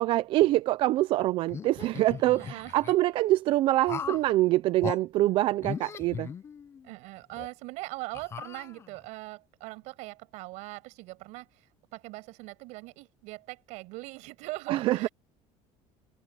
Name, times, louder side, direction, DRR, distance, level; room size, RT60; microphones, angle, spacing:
voice 1, 0.0-6.3 14.7-15.1, right 16 dB, 45° right, 0.4 m, -25 dB
sound 1, 1.5-2.9 3.9-4.3 4.8-5.0 5.6-6.9 7.3-7.5 8.1-9.1, left 7 dB, 20° left, 0.4 m, -38 dB
voice 2, 2.3-2.8 6.8-15.1, right 22 dB, 70° right, 6.6 m, -41 dB
cardioid pair, 180°, 13 cm